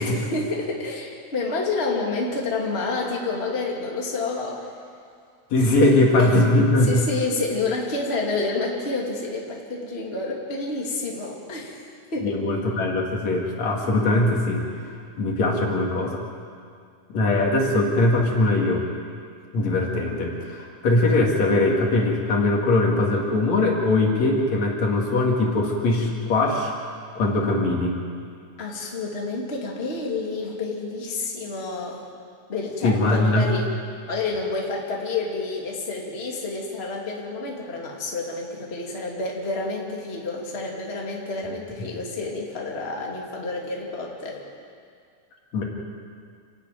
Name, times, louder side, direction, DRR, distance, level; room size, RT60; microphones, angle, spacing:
voice 1, 0.0-4.6 5.8-6.3 6.8-12.4 28.6-32.0 32.5-33.7 34.1-44.4, left 3 dB, 20° left, -2 dB, 2.6 m, -29 dB
voice 2, 5.5-7.0 12.2-16.2 17.1-18.9 19.5-26.7 27.2-28.0 32.8-33.5 45.5-45.6, left 2 dB, 60° left, -1 dB, 3.5 m, -21 dB
28.5 x 12.0 x 9.3 m, 2.2 s
omnidirectional pair, 3.5 m